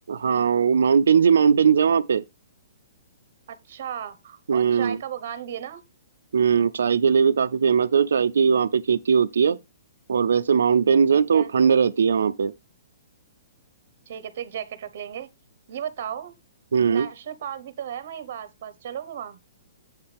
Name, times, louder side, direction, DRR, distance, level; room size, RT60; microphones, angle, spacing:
voice 1, 0.1-2.2 4.5-5.0 6.3-9.6 10.1-12.5 16.7-17.1, right 6 dB, 80° right, 0.5 m, -19 dB
voice 2, 3.5-5.8 11.1-11.5 14.1-15.3 15.7-16.3 16.8-19.4, right 9 dB, 40° right, 1.1 m, -35 dB
8.6 x 8.0 x 3.4 m
hypercardioid pair, 180°, 0 cm